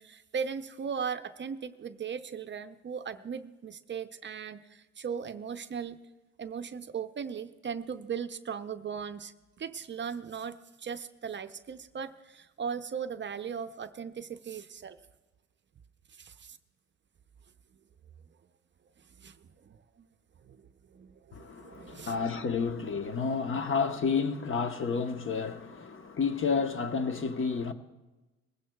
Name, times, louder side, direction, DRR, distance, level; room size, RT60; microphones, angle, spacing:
voice 1, 0.0-6.0 6.4-9.3 9.6-15.0 16.1-16.6 19.2-19.4 19.6-20.1 20.4-22.3, right 6 dB, 40° right, 0.6 m, -38 dB
voice 2, 21.3-27.7, left 5 dB, 45° left, 1.0 m, -30 dB
20.5 x 16.0 x 2.3 m
cardioid pair, 90°, 30 cm